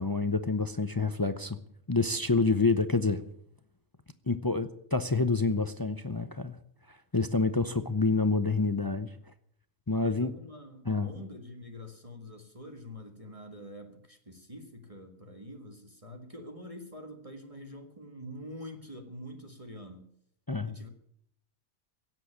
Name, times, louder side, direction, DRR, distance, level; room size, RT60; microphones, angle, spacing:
voice 1, 0.0-1.6 1.9-3.2 4.3-6.6 6.9-9.1 9.9-10.3 10.9-11.1 20.5-20.7, left 3 dB, 35° left, 11 dB, 0.3 m, -28 dB
voice 2, 10.0-20.1 20.6-20.9, equal, 25° right, 5 dB, 1.7 m, -46 dB
17.0 x 7.7 x 9.9 m, 0.71 s
omnidirectional pair, 1.5 m